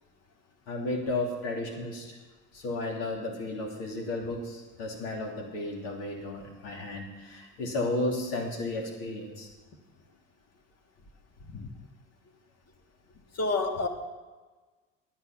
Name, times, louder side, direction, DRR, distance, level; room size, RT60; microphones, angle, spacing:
voice 1, 0.7-2.2 2.5-9.5, left 2 dB, 80° left, 0 dB, 2.9 m, -33 dB
voice 2, 13.4-13.9, left 3 dB, 45° left, 5 dB, 1.9 m, -29 dB
11.0 x 10.0 x 6.0 m, 1.3 s
hypercardioid pair, 75°, 36 cm